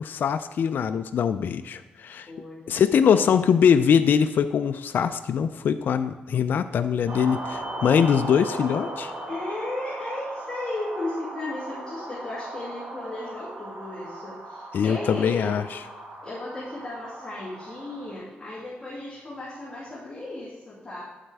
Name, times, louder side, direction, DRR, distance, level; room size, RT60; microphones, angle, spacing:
voice 1, 0.0-2.3 2.7-9.1 14.7-15.8, left 7 dB, 65° left, 10 dB, 0.3 m, -22 dB
voice 2, 2.3-3.4 9.3-15.5 16.2-21.0, left 2 dB, 20° left, -8 dB, 2.4 m, -35 dB
sound 1, 7.1-18.1, right 1 dB, 70° right, 2.1 m, -37 dB
8.9 x 7.4 x 3.4 m, 1.3 s
cardioid pair, 95°, 4 cm